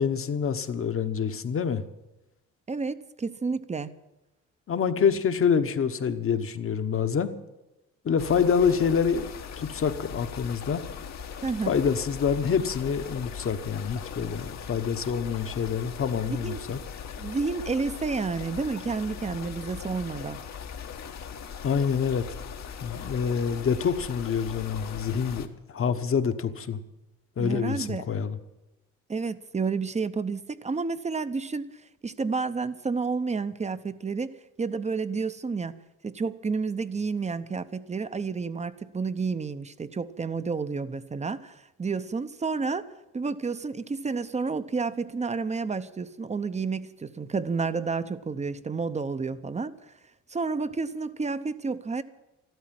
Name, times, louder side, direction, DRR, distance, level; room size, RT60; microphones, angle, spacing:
voice 1, 0.0-1.8 4.7-7.3 8.0-9.3 9.6-10.8 11.7-16.8 21.6-22.4 22.8-26.8 27.4-28.4, left 6 dB, 45° left, 9 dB, 1.1 m, -26 dB
voice 2, 2.7-3.9 11.4-11.7 16.4-16.6 17.2-20.4 27.4-28.0 29.1-31.7 32.0-35.7 36.0-49.7 50.3-52.0, right 4 dB, 25° right, 13 dB, 0.8 m, -30 dB
sound 1, 8.2-25.5, left 7 dB, 65° left, 1.3 m, -40 dB
13.0 x 12.5 x 7.6 m, 0.99 s
cardioid pair, 90°, 30 cm